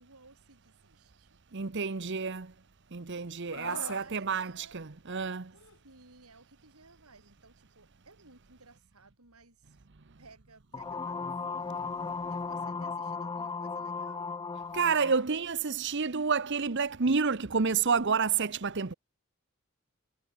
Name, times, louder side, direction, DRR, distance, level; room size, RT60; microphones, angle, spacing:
voice 1, 0.0-1.4 3.5-4.8 5.5-5.6 5.8-9.8 10.2-14.3, right 3 dB, 90° right, 6.2 m, -57 dB
voice 2, 1.5-2.5 2.9-5.5 14.7-18.9, right 5 dB, 55° right, 0.9 m, -29 dB
Screaming, 3.5-4.1 5.5-5.8, left 4 dB, 70° left, 2.9 m, -42 dB
sound 1, 10.7-15.2, left 4 dB, 20° left, 0.3 m, -36 dB
head